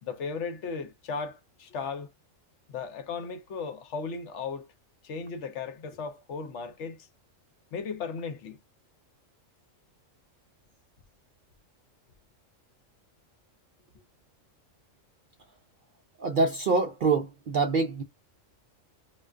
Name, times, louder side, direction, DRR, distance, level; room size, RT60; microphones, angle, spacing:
voice 1, 0.0-2.1 2.7-4.7 5.0-7.1 7.7-8.6, left 5 dB, 70° left, 0.9 m, -36 dB
voice 2, 16.2-18.0, right 3 dB, 65° right, 0.5 m, -25 dB
2.4 x 2.2 x 2.3 m
omnidirectional pair, 1.4 m